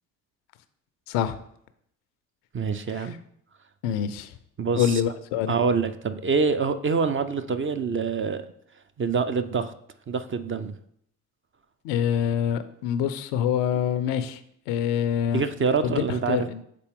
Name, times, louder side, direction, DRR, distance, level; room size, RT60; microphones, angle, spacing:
voice 1, 1.1-1.4 2.9-3.2 3.8-4.3 4.7-5.5 11.8-14.4 14.7-15.4 15.8-16.6, left 9 dB, 70° left, 13 dB, 0.6 m, -26 dB
voice 2, 2.5-3.2 4.6-5.0 5.5-8.4 9.0-9.7 10.1-10.7 15.3-16.5, right 5 dB, 30° right, 9 dB, 0.5 m, -25 dB
6.6 x 4.2 x 3.6 m, 0.69 s
hypercardioid pair, 45°, 44 cm